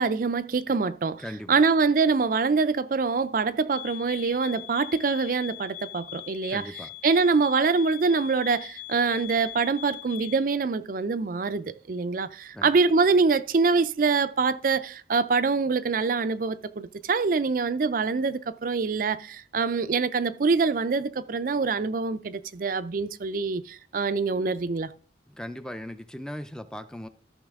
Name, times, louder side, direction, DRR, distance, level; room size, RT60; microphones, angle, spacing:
voice 1, 0.0-1.2 1.5-6.6 7.0-24.9, right 4 dB, 50° right, 0.4 m, -25 dB
voice 2, 1.2-1.6 6.5-6.9 12.5-12.7 25.3-27.1, equal, 5° left, 0.4 m, -38 dB
sound 1, 3.7-10.5, left 17 dB, 50° left, 1.7 m, -42 dB
13.5 x 5.9 x 3.6 m
head